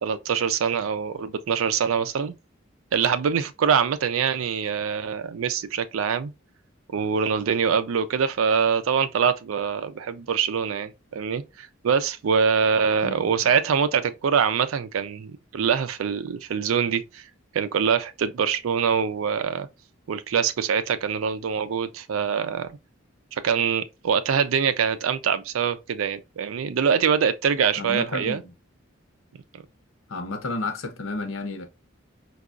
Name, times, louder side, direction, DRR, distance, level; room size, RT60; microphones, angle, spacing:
voice 1, 0.0-2.3 2.9-6.3 6.9-17.3 17.5-19.7 20.1-22.8 23.3-28.4 29.5-29.6, right 6 dB, 90° right, 0.4 m, -24 dB
voice 2, 27.8-28.5 30.1-31.7, left 2 dB, 85° left, 0.8 m, -31 dB
4.6 x 2.3 x 2.4 m
head